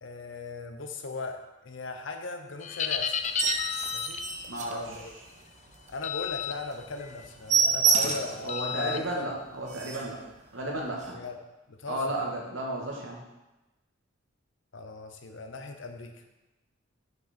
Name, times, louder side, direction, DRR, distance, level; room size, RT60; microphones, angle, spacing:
voice 1, 0.0-3.2 3.9-4.2 4.7-5.1 5.9-9.3 11.1-11.4 11.7-12.2 14.7-16.2, left 3 dB, 70° left, 6 dB, 0.7 m, -38 dB
sound 1, 2.6-4.3 6.0-6.5 7.0-7.3 8.5-9.0, left 8 dB, 35° left, 0.4 m, -32 dB
sound 2, 3.2-5.4 5.8-5.9 6.3-6.4 6.7-6.8 7.1-8.4 8.9-9.0 9.4-9.5 9.7-10.2 10.9-11.1, right 5 dB, 35° right, 0.6 m, -28 dB
voice 2, 4.5-4.8 8.4-10.2 10.5-11.2 11.9-13.2, right 1 dB, 80° right, -1 dB, 1.6 m, -33 dB
6.5 x 5.5 x 4.2 m, 1.0 s
head